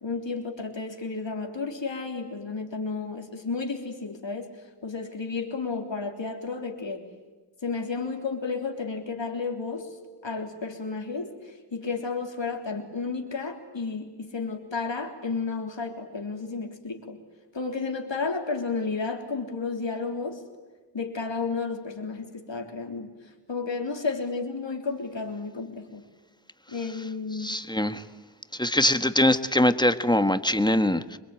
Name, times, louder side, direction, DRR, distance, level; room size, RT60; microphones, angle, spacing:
voice 1, 0.0-4.5 4.8-7.0 7.6-9.9 10.2-17.2 17.5-20.4 20.9-23.1 23.5-26.0 26.7-27.6, left 4 dB, 90° left, 3 dB, 3.5 m, -32 dB
voice 2, 27.4-28.0 28.6-31.2, left 1 dB, 10° left, 10 dB, 1.4 m, -23 dB
26.5 x 22.5 x 9.1 m, 1.3 s
wide cardioid pair, 45°, 43 cm